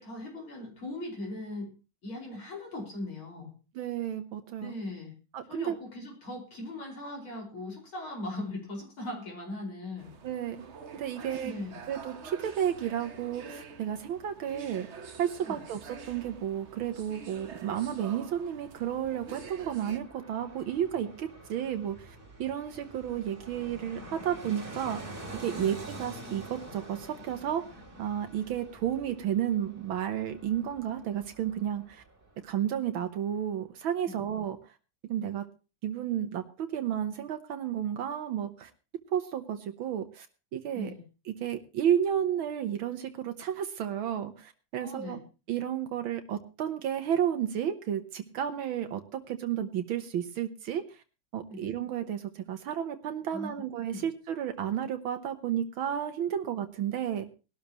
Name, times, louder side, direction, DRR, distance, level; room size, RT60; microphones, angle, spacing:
voice 1, 0.0-1.7 2.0-3.5 4.6-5.1 5.5-10.1 11.1-11.8 15.4-15.6 25.6-25.7 34.1-34.2 40.7-41.0 44.8-45.2 51.5-51.6 53.3-53.6 53.9-54.0, left 2 dB, 85° left, -1 dB, 6.0 m, -39 dB
voice 2, 3.8-4.7 5.3-5.8 10.2-10.6 10.9-11.5 11.9-14.9 15.2-25.0 25.3-27.6 28.0-32.0 32.4-34.6 35.1-35.5 35.8-38.7 39.1-40.3 40.5-40.9 41.3-45.2 45.5-51.0 51.3-57.3, right 10 dB, 80° right, 7 dB, 1.8 m, -32 dB
sound 1, 10.0-20.0, right 5 dB, 40° right, 1.1 m, -47 dB
Fixed-wing aircraft airplane, 15.7-32.6 32.9-33.0, right 1 dB, 25° right, 2.5 m, -47 dB
20.5 x 12.5 x 3.0 m, 0.32 s
omnidirectional pair, 2.2 m